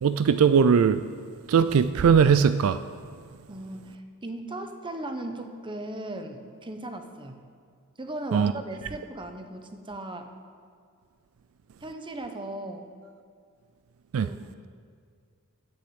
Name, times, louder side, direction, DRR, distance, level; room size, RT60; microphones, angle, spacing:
voice 1, 0.0-1.0 1.5-2.8 8.3-8.5 14.1-14.3, right 6 dB, 65° right, 12 dB, 0.4 m, -20 dB
voice 2, 3.5-7.4 8.0-10.3 11.8-12.9 14.2-14.4, right 1 dB, 20° right, 6 dB, 0.9 m, -37 dB
10.5 x 8.4 x 7.8 m, 2.2 s
head